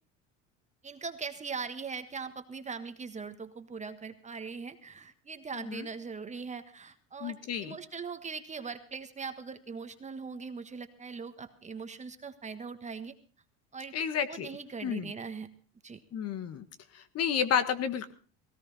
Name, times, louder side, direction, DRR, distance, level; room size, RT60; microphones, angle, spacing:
voice 1, 0.8-7.4 7.6-13.1 13.7-13.9 14.3-15.5 15.8-16.0, right 5 dB, 20° right, 9 dB, 1.5 m, -40 dB
voice 2, 5.5-5.9 7.2-7.7 13.9-14.5 14.8-15.1 16.1-16.6 16.9-18.1, left 8 dB, 50° left, 11 dB, 1.6 m, -31 dB
17.5 x 17.5 x 4.1 m, 0.38 s
supercardioid pair, 110°, 33 cm